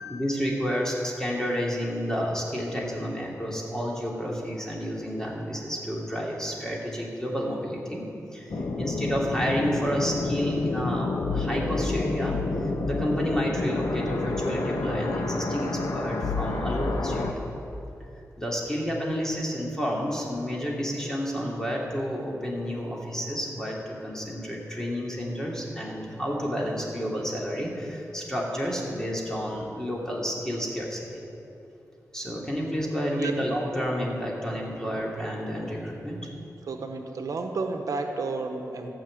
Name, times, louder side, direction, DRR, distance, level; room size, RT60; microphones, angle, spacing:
voice 1, 0.1-8.0 8.3-17.4 18.4-31.2 32.1-36.3, equal, 10° left, -3 dB, 2.7 m, -30 dB
sound 1, 8.5-17.3, left 3 dB, 65° left, 1.0 m, -29 dB
voice 2, 8.5-8.9 33.1-33.3 36.7-38.9, right 3 dB, 75° right, 4 dB, 1.0 m, -32 dB
14.5 x 6.0 x 8.6 m, 2.8 s
wide cardioid pair, 90°, 6 cm